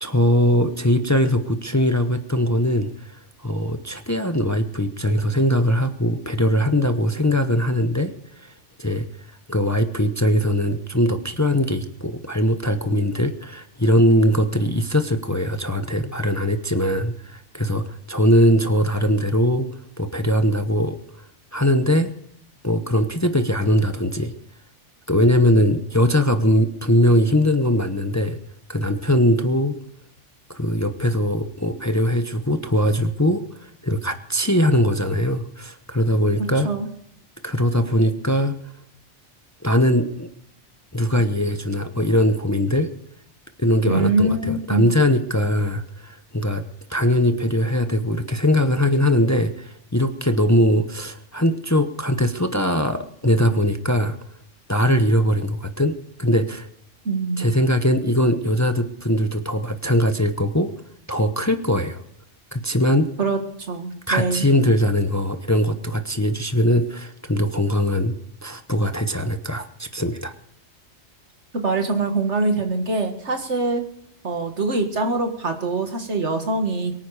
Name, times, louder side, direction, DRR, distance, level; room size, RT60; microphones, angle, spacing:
voice 1, 0.0-9.1 9.5-19.7 20.0-21.0 21.5-22.1 22.6-24.3 25.1-28.4 28.7-29.8 30.5-36.7 37.4-38.6 39.6-40.3 40.9-42.9 43.6-46.6 46.9-54.2 54.7-55.9 56.2-56.7 57.4-60.7 61.1-62.0 62.5-63.1 64.1-68.1 68.4-70.3, equal, 15° left, 7 dB, 0.9 m, -21 dB
voice 2, 43.9-44.9 57.1-57.5 63.2-64.5 71.5-73.8 74.2-76.9, right 3 dB, 70° right, 5 dB, 2.1 m, -23 dB
23.5 x 9.4 x 4.9 m, 0.73 s
omnidirectional pair, 1.2 m